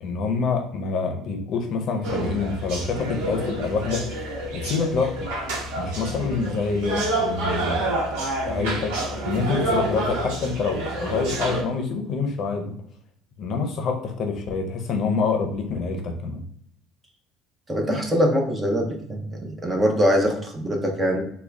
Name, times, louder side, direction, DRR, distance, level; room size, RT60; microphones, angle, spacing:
voice 1, 0.0-4.0 4.5-5.3 5.8-7.9 8.4-8.9 9.2-12.7 13.4-16.4, left 4 dB, 50° left, 4 dB, 0.6 m, -26 dB
sound 1, 2.0-11.6, right 1 dB, 85° right, 1.0 m, -28 dB
voice 2, 17.7-21.2, equal, 15° right, 2 dB, 0.6 m, -23 dB
3.6 x 2.2 x 3.3 m, 0.67 s
cardioid pair, 140°, 0 cm